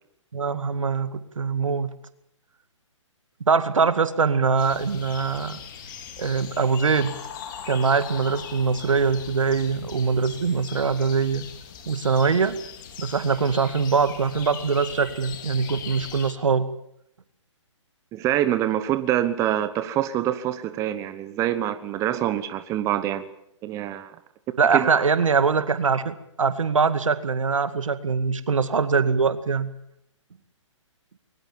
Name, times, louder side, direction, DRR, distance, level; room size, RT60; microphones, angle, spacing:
voice 1, 0.3-1.9 3.4-5.6 6.2-7.1 7.7-11.5 11.9-12.6 13.0-16.7 24.6-29.7, right 5 dB, 80° right, 12 dB, 2.1 m, -23 dB
sound 1, 4.6-16.3, left 7 dB, 40° left, 3.6 m, -40 dB
voice 2, 18.1-23.3 23.6-24.2 24.7-24.8, right 12 dB, 20° right, 11 dB, 1.1 m, -25 dB
22.0 x 19.5 x 7.4 m, 0.76 s
hypercardioid pair, 145°, 16 cm